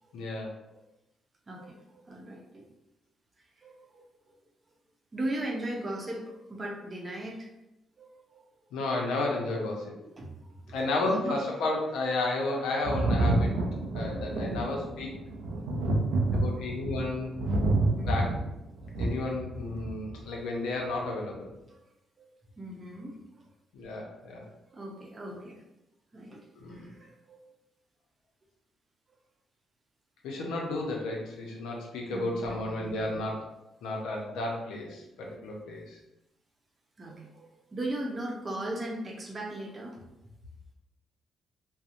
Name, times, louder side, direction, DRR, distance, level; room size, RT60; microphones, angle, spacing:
voice 1, 0.1-0.5 8.7-10.0 10.7-13.6 13.9-15.1 16.3-17.3 17.9-18.3 19.0-21.5 23.7-24.4 26.6-26.9 30.2-33.4 33.8-36.0, left 2 dB, 85° left, -1 dB, 0.5 m, -32 dB
voice 2, 1.5-2.6 3.6-4.0 5.1-7.5 8.0-8.4 10.0-10.8 11.0-11.4 14.3-14.7 16.3-16.4 18.0-18.2 21.7-21.8 22.2-22.3 22.6-23.4 24.7-25.6 26.1-27.5 32.1-33.1 37.0-40.0, right 1 dB, 35° right, 0 dB, 0.6 m, -38 dB
Thunder, 12.8-20.2 21.3-21.4, right 2 dB, 85° right, 0.4 m, -29 dB
2.7 x 2.0 x 2.5 m, 0.90 s
supercardioid pair, 70°, 0 cm